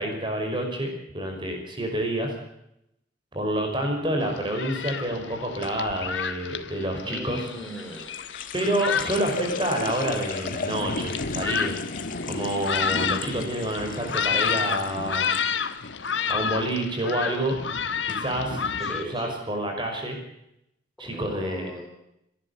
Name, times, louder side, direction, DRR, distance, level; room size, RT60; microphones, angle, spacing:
voice 1, 0.0-2.3 3.3-7.5 8.5-11.8 12.3-15.3 16.3-17.6 18.1-20.2 21.0-21.7, right 1 dB, 25° right, 2 dB, 5.7 m, -28 dB
Thunderstorm, 4.2-19.0, left 6 dB, 85° left, 1.3 m, -30 dB
sound 1, 5.6-6.0 7.5-15.4 15.7-16.3 16.6-17.0 17.7-17.8 18.1-18.2, left 5 dB, 45° left, 1.6 m, -37 dB
voice 2, 7.0-8.2 18.8-19.4 21.0-21.9, equal, ahead, -1 dB, 4.4 m, -38 dB
30.0 x 11.0 x 8.4 m, 0.81 s
head